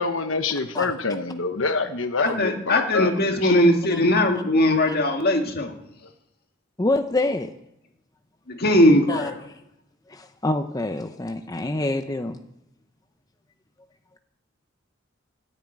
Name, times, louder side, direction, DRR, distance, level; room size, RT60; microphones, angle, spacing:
voice 1, 0.0-3.6, left 4 dB, 75° left, 8 dB, 1.0 m, -26 dB
voice 2, 2.2-5.7 8.5-9.4, left 1 dB, 50° left, 3 dB, 1.9 m, -20 dB
voice 3, 6.8-7.5 9.1-9.3 10.1-12.4, left 2 dB, 20° left, 6 dB, 0.6 m, -26 dB
14.5 x 9.4 x 9.1 m, 0.82 s
head